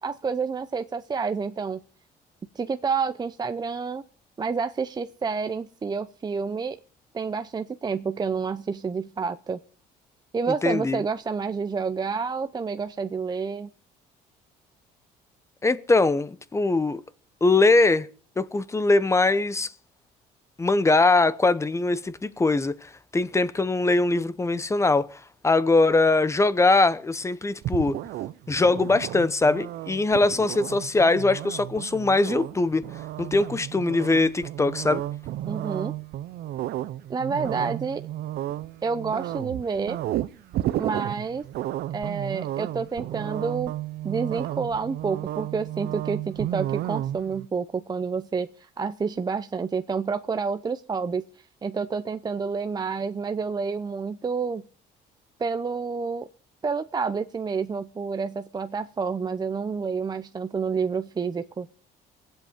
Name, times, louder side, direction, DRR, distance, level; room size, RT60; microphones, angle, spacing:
voice 1, 0.0-1.8 2.5-4.0 4.4-6.8 7.1-9.6 10.3-13.7 35.5-35.9 37.1-38.0 38.8-40.0 40.8-41.4 41.9-43.7 44.0-51.2 51.6-54.6 55.4-56.3 56.6-61.7, right 5 dB, 25° right, 0.7 m, -29 dB
voice 2, 10.6-11.0 15.6-17.0 17.4-18.1 18.4-19.7 20.6-28.0 28.5-32.9 33.2-35.0, left 3 dB, 15° left, 0.9 m, -22 dB
sound 1, 27.6-47.5, right 13 dB, 70° right, 0.7 m, -33 dB
22.5 x 8.0 x 5.1 m
cardioid pair, 110°, 17 cm